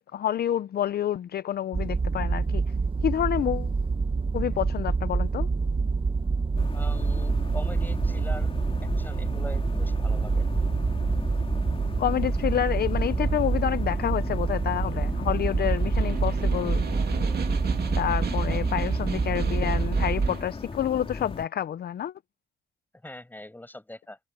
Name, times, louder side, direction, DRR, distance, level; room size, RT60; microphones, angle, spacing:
voice 1, 0.0-2.6 3.0-3.7 4.3-5.5 12.0-16.8 18.0-22.1, left 10 dB, 50° left, 0.6 m, -28 dB
sound 1, 1.7-20.3, right 4 dB, 25° right, 1.4 m, -26 dB
sound 2, 6.6-21.5, left 4 dB, 30° left, 3.6 m, -37 dB
voice 2, 6.7-8.5 9.0-10.5 23.0-24.2, left 1 dB, 10° left, 7.2 m, -42 dB
Snare drum, 15.6-20.6, right 8 dB, 55° right, 2.5 m, -36 dB
cardioid pair, 90°, 20 cm